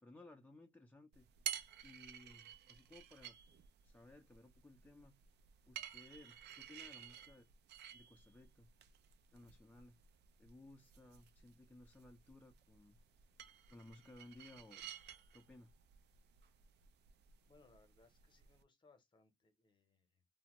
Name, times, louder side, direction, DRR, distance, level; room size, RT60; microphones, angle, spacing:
voice 1, 0.0-1.3 1.8-3.4 3.8-5.2 5.7-7.5 7.9-8.7 9.3-10.0 10.4-13.0 13.7-14.9 15.3-15.7, left 2 dB, 10° left, 0.3 m, -60 dB
sound 1, 1.1-18.6, right 9 dB, 60° right, 0.4 m, -53 dB
voice 2, 17.5-20.2, left 3 dB, 25° left, 0.8 m, -69 dB
2.7 x 2.1 x 2.9 m
cardioid pair, 120°, 20 cm